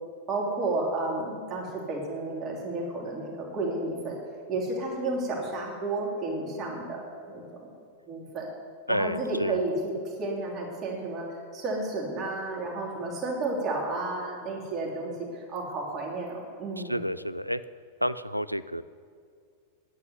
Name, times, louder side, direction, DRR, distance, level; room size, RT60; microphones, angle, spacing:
voice 1, 0.3-4.2 4.5-7.4 8.1-8.5 8.9-17.0, right 2 dB, 30° right, -2 dB, 3.3 m, -32 dB
voice 2, 8.9-9.6 16.9-17.6 18.0-18.8, equal, 90° left, 14 dB, 0.4 m, -29 dB
10.5 x 8.2 x 9.6 m, 2.3 s
figure-of-eight pair, 90°, 0 cm